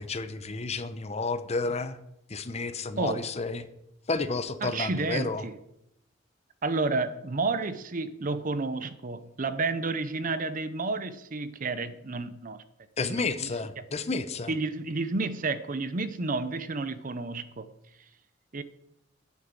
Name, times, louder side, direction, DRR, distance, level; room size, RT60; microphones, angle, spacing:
voice 1, 0.0-2.0 2.3-3.7 4.1-5.5 13.0-14.5, left 3 dB, 35° left, 0.8 m, -31 dB
voice 2, 4.6-5.5 6.6-12.6 13.0-13.2 13.8-13.9 14.5-17.7 18.5-18.6, right 3 dB, 45° right, 0.7 m, -31 dB
9.9 x 8.3 x 7.5 m
head